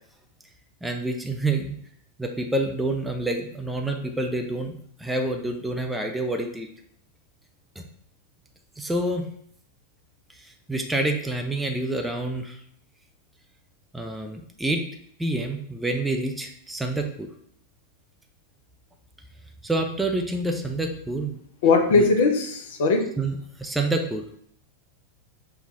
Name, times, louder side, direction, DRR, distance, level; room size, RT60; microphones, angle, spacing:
voice 1, 0.8-1.8 2.2-6.7 7.8-7.9 8.8-9.3 10.4-12.6 13.9-14.8 15.2-17.3 19.6-21.4 21.9-22.1 23.2-24.3, right 2 dB, 5° right, 4 dB, 0.4 m, -28 dB
voice 2, 21.6-23.1, left 4 dB, 55° left, 5 dB, 0.6 m, -19 dB
5.5 x 2.3 x 3.7 m, 0.66 s
figure-of-eight pair, 90°, 0 cm